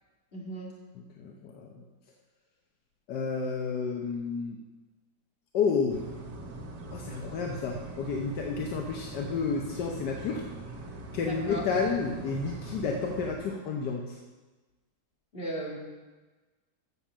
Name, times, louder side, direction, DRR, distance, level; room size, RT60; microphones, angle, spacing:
voice 1, 0.3-0.7 11.2-11.6 15.3-15.8, right 1 dB, 35° left, -3 dB, 2.2 m, -36 dB
voice 2, 1.2-1.8 3.1-4.6 5.5-6.0 6.9-10.5 11.1-14.2, left 5 dB, 80° left, 1 dB, 1.5 m, -31 dB
sound 1, 5.9-13.3, right 2 dB, 85° right, 1.9 m, -42 dB
7.8 x 7.4 x 7.1 m, 1.3 s
omnidirectional pair, 1.8 m